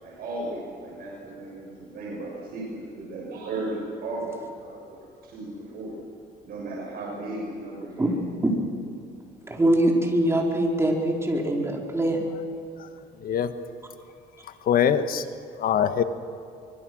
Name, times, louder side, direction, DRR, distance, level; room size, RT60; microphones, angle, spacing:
voice 1, 0.0-6.0 6.4-8.1, right 2 dB, 65° right, -3 dB, 6.6 m, -35 dB
voice 2, 9.4-12.2, right 1 dB, 15° right, -1 dB, 4.7 m, -23 dB
voice 3, 13.2-13.5 14.6-15.2 15.6-16.0, left 8 dB, 60° left, 9 dB, 1.5 m, -22 dB
25.0 x 22.5 x 6.4 m, 2.5 s
cardioid pair, 110°, 17 cm